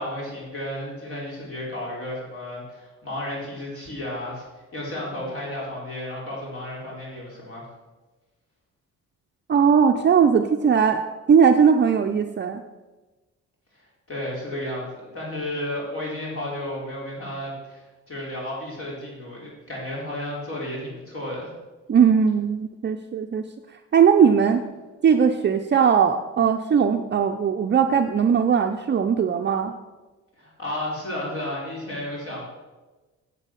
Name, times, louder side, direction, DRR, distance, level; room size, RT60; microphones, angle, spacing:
voice 1, 0.0-4.5 4.7-7.7 13.7-21.5 30.4-32.4, left 1 dB, 45° left, -4 dB, 4.4 m, -33 dB
voice 2, 9.5-11.0 11.3-12.6 21.9-23.4 23.9-24.6 25.0-29.7, right 7 dB, 35° right, 5 dB, 0.6 m, -19 dB
9.7 x 7.6 x 6.4 m, 1.2 s
cardioid pair, 90°, 30 cm